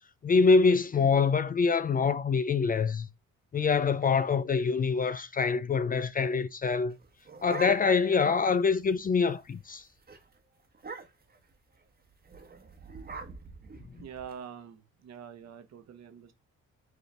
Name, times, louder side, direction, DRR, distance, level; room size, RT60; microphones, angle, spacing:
voice 1, 0.2-3.1 3.5-6.9 7.4-9.8, left 5 dB, 30° left, 0.4 m, -25 dB
sound 1, 6.9-8.2 8.5-8.6 8.9-9.2 9.6-9.8 10.1-10.2 10.7-11.4 12.3-14.3, right 3 dB, 30° right, 1.1 m, -43 dB
voice 2, 14.0-16.3, right 8 dB, 60° right, 1.0 m, -45 dB
4.8 x 3.2 x 3.3 m
cardioid pair, 90°, 30 cm